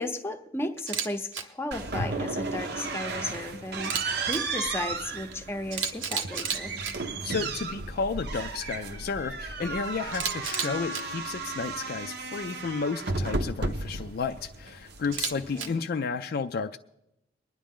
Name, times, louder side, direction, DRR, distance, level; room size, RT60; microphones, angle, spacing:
voice 1, 0.0-3.9 4.2-6.7 15.4-15.8, left 2 dB, 15° left, 6 dB, 0.7 m, -34 dB
Camera, 0.8-1.1 1.3-1.4 3.7-4.4 5.3-5.4 5.7-6.9 10.1-11.0 15.0-15.7, right 6 dB, 85° right, 1.0 m, -31 dB
sound 1, 1.7-15.8, right 3 dB, 60° right, 0.7 m, -34 dB
voice 2, 7.2-16.8, left 5 dB, 50° left, 8 dB, 0.4 m, -32 dB
23.0 x 10.0 x 3.6 m, 0.87 s
head